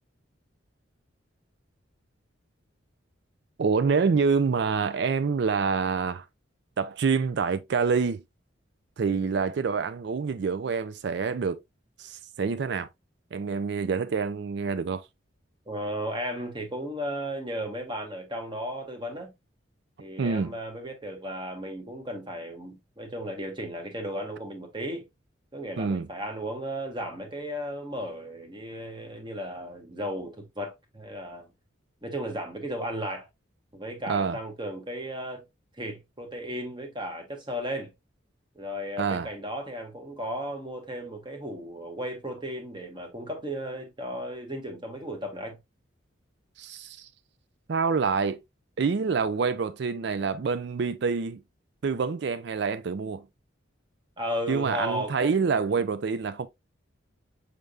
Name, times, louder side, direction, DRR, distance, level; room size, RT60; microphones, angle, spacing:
voice 1, 3.6-6.2 6.8-8.2 9.0-11.6 12.0-12.9 13.3-15.0 20.2-20.5 25.8-26.1 34.1-34.4 39.0-39.3 46.6-47.1 47.7-48.4 48.8-51.4 51.8-53.3 54.5-56.5, right 5 dB, 60° right, 0.4 m, -27 dB
voice 2, 9.1-9.4 15.7-19.3 20.0-25.0 25.5-31.5 32.0-33.3 33.7-35.4 35.8-37.9 38.5-45.6 54.2-55.8, equal, 25° right, 1.2 m, -35 dB
6.5 x 3.4 x 2.4 m
head